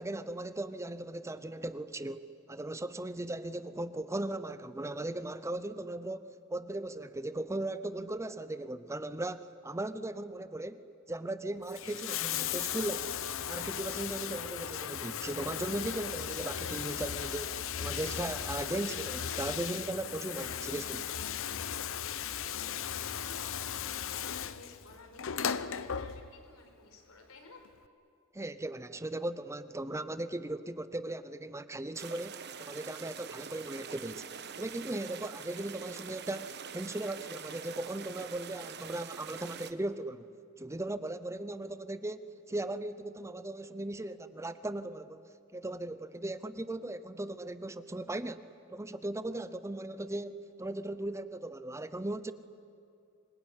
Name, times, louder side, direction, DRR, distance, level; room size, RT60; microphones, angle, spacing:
voice 1, 0.0-13.2 13.5-21.1 28.3-34.3 34.6-40.3 40.6-52.3, right 1 dB, 15° right, 0.7 m, -38 dB
Bathtub (filling or washing), 11.6-26.5 27.7-27.8, left 8 dB, 65° left, 0.9 m, -37 dB
voice 2, 22.5-24.1 24.4-27.6, left 3 dB, 80° left, 4.7 m, -55 dB
sound 1, 31.9-39.7, right 7 dB, 50° right, 1.2 m, -45 dB
25.0 x 21.5 x 9.8 m
head